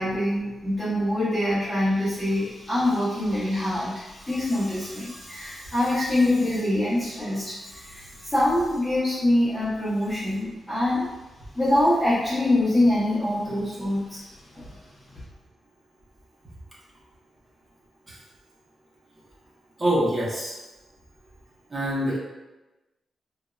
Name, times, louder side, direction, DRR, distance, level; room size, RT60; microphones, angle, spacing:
voice 1, 0.0-11.1 11.5-14.2 14.5-14.7 15.1-15.2, left 1 dB, 5° left, -13 dB, 1.2 m, -24 dB
voice 2, 19.8-20.5 21.7-22.2, right 1 dB, 25° right, -6 dB, 1.0 m, -25 dB
3.6 x 2.8 x 2.4 m, 1.1 s
wide cardioid pair, 115°, 0 cm